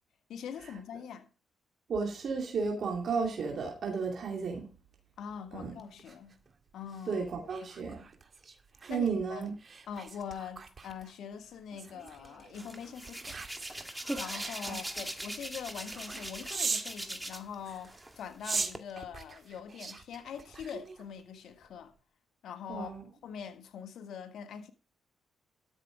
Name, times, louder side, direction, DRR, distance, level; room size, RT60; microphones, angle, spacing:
voice 1, 0.3-1.3 5.2-6.4 6.7-7.2 7.8-8.1 8.9-9.4 9.9-13.4 14.1-21.9 22.4-22.9 23.2-24.7, left 7 dB, 70° left, 1.5 m, -43 dB
voice 2, 1.9-4.7 5.5-5.7 7.1-8.0 8.9-9.5 14.6-14.7 22.7-23.0, right 5 dB, 60° right, 2.5 m, -33 dB
sound 1, 5.8-17.0 17.6-21.2 21.6-21.9, right 4 dB, 45° right, 1.8 m, -42 dB
Hands, 12.5-17.5 17.9-18.8, right 1 dB, 10° right, 2.0 m, -41 dB
13.0 x 6.7 x 5.0 m
hypercardioid pair, 45°, 0 cm